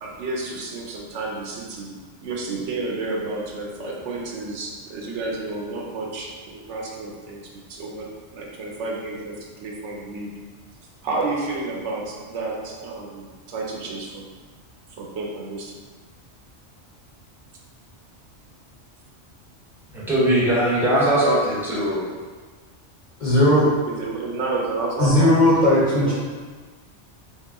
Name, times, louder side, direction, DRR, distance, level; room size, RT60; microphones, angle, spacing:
voice 1, 0.0-1.9 2.2-8.1 8.3-10.3 11.0-14.3 15.0-15.7 23.9-26.1, right 3 dB, 75° right, -2 dB, 0.9 m, -31 dB
voice 2, 19.9-22.1, right 1 dB, ahead, -8 dB, 0.6 m, -20 dB
voice 3, 23.2-23.7 25.0-26.1, left 1 dB, 50° left, -7 dB, 0.6 m, -17 dB
2.9 x 2.6 x 3.4 m, 1.4 s
omnidirectional pair, 1.2 m